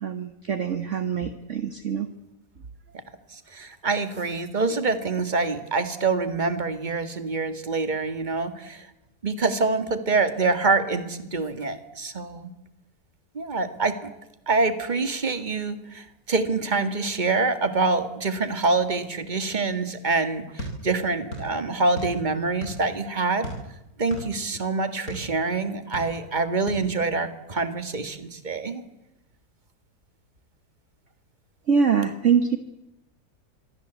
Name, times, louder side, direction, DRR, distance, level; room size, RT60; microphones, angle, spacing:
voice 1, 0.0-2.1 31.7-32.6, right 6 dB, 45° right, 9 dB, 1.5 m, -24 dB
voice 2, 3.3-8.9 9.2-12.5 13.4-14.0 14.5-23.5 24.0-28.8, right 3 dB, 25° right, 10 dB, 2.0 m, -26 dB
sound 1, 20.6-21.5 21.8-22.9 23.4-25.3 25.7-26.4 26.7-26.9, equal, 55° left, 7.7 m, -35 dB
26.0 x 23.0 x 8.2 m, 0.93 s
omnidirectional pair, 1.8 m